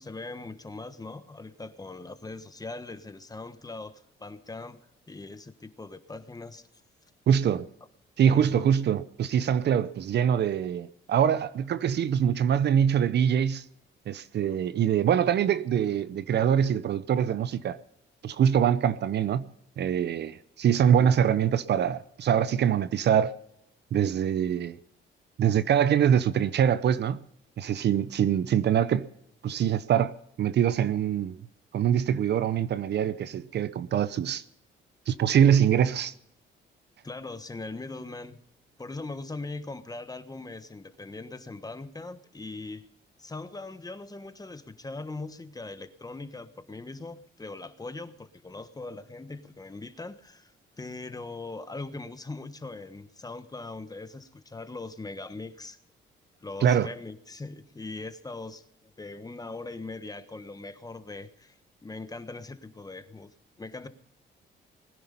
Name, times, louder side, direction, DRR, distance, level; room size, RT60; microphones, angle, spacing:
voice 1, 0.0-4.8 5.1-6.7 8.3-8.7 21.0-21.2 37.0-38.4 38.8-42.9 43.2-55.8 56.4-61.5 61.8-63.9, left 3 dB, 20° left, 1.2 m, -40 dB
voice 2, 7.3-7.7 8.2-13.6 14.1-17.8 18.2-19.5 19.8-23.3 23.9-24.8 25.4-27.2 27.6-29.1 29.4-31.4 31.7-34.4 35.1-36.1 56.6-56.9, right 9 dB, 60° right, 0.7 m, -24 dB
20.5 x 10.5 x 5.5 m
cardioid pair, 90°, 20 cm